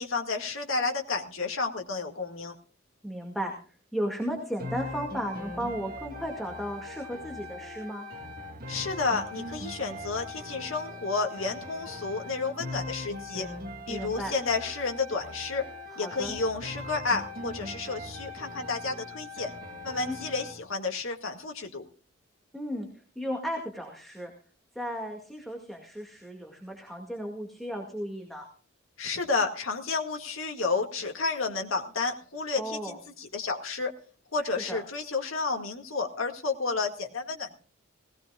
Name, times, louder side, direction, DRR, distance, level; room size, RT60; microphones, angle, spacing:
voice 1, 0.0-2.5 8.7-13.5 13.9-15.7 16.0-19.5 19.8-21.9 29.0-33.9 34.3-37.5, left 4 dB, 70° left, 2 dB, 2.0 m, -31 dB
voice 2, 3.0-3.5 3.9-8.1 13.9-14.3 16.0-16.4 20.0-20.2 22.5-22.9 23.2-24.3 24.8-28.5 32.6-33.0 34.7-34.8, equal, ahead, 1 dB, 2.1 m, -35 dB
sound 1, 4.6-20.6, left 1 dB, 45° right, 1.6 m, -40 dB
19.0 x 17.5 x 2.4 m, 0.40 s
head